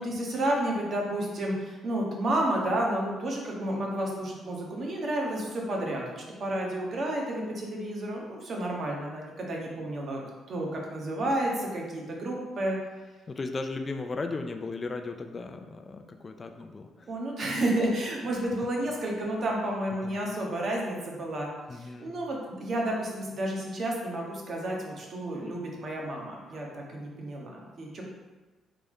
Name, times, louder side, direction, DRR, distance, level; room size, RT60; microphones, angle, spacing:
voice 1, 0.0-10.2 10.5-12.8 17.1-28.0, right 1 dB, 45° right, -1 dB, 0.9 m, -31 dB
voice 2, 13.3-17.1 20.0-20.2 21.7-22.1, left 3 dB, 25° left, 6 dB, 0.3 m, -36 dB
4.0 x 3.4 x 3.6 m, 1.2 s
cardioid pair, 135°, 0 cm